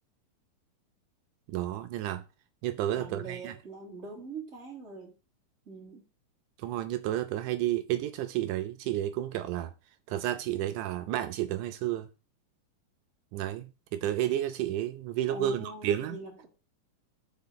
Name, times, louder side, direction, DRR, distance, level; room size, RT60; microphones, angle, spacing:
voice 1, 1.5-2.2 2.6-3.5 6.6-9.7 10.1-12.1 13.3-16.2, right 13 dB, 85° right, 2.1 m, -31 dB
voice 2, 2.9-5.1 5.7-6.0 15.3-16.5, right 2 dB, 25° right, 2.5 m, -42 dB
6.0 x 4.2 x 5.6 m
omnidirectional pair, 3.6 m